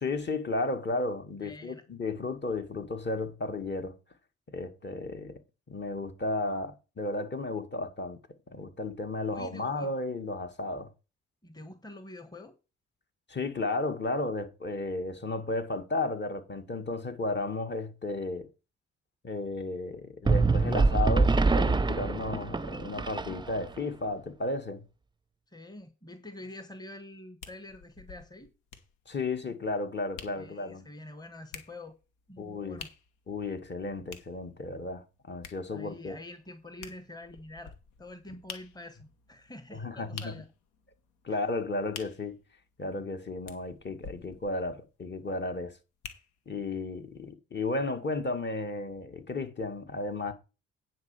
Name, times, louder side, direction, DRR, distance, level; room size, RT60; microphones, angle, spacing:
voice 1, 0.0-4.0 4.5-5.4 5.7-8.2 8.5-10.9 13.3-18.5 19.2-24.8 29.1-30.9 32.4-32.8 33.3-36.2 39.7-40.3 41.2-42.4 42.8-45.8 46.5-50.3, left 2 dB, 40° left, 2.0 m, -33 dB
voice 2, 1.4-1.8 9.3-9.9 11.4-12.6 25.5-28.5 30.4-32.0 32.3-32.9 35.7-40.5 41.3-41.4, left 1 dB, 15° left, 1.3 m, -46 dB
sound 1, 20.3-23.8, right 3 dB, 15° right, 0.6 m, -25 dB
sound 2, 27.4-46.7 47.2-47.3, left 6 dB, 85° left, 1.2 m, -50 dB
9.5 x 4.6 x 7.1 m
hypercardioid pair, 45°, 29 cm